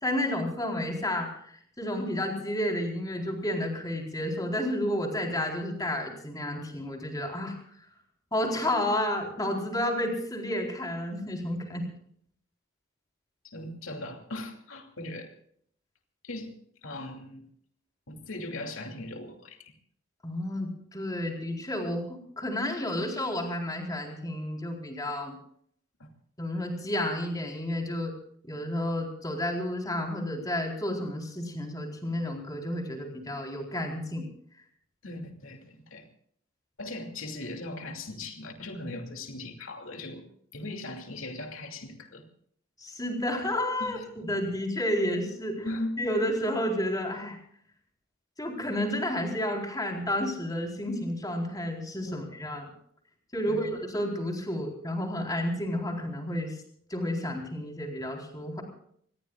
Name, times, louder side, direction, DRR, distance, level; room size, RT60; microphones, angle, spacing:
voice 1, 0.0-7.6 8.3-11.9 20.2-25.4 26.4-28.1 28.5-34.3 42.8-45.7 46.0-47.4 48.4-52.7 53.3-56.6 56.9-58.6, left 1 dB, 20° left, 1 dB, 4.1 m, -31 dB
voice 2, 13.4-15.3 16.2-16.5 16.8-17.4 18.1-19.7 26.0-26.1 35.0-36.1 36.8-40.2 40.5-42.2 43.8-44.0 45.6-46.0 52.1-52.2 53.4-53.7, left 2 dB, 85° left, 3 dB, 2.7 m, -39 dB
25.5 x 20.5 x 2.4 m, 0.64 s
head